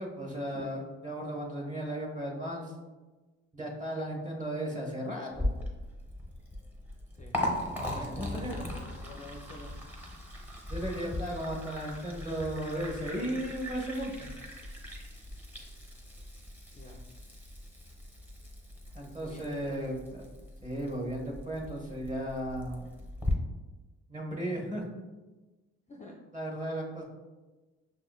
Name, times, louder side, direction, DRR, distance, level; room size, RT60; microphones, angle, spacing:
voice 1, 0.0-2.7 3.5-5.6 7.9-8.7 10.7-14.3 18.9-20.0 20.6-22.9 24.1-24.9 26.3-27.0, right 1 dB, 25° right, -1 dB, 1.1 m, -35 dB
Liquid, 5.3-23.3, left 1 dB, 5° right, 0.9 m, -39 dB
voice 2, 7.9-9.7 16.7-17.0 19.0-19.9 25.9-26.2, left 1 dB, 25° left, 0 dB, 0.4 m, -48 dB
6.1 x 2.8 x 2.3 m, 1.2 s
cardioid pair, 90°, 30 cm